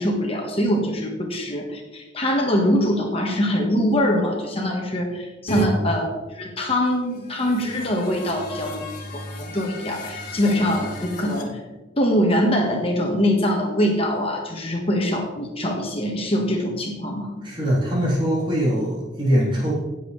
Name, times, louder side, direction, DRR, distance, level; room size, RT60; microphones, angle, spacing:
voice 1, 0.0-6.1 6.3-8.8 9.1-11.6 12.0-17.3, equal, 30° left, 1 dB, 1.5 m, -23 dB
sound 1, 5.5-5.7 7.1-11.4, right 1 dB, 55° left, 2.1 m, -33 dB
voice 2, 5.5-5.9 17.4-19.7, equal, 30° right, -8 dB, 3.9 m, -22 dB
17.5 x 7.5 x 3.3 m, 1.2 s
head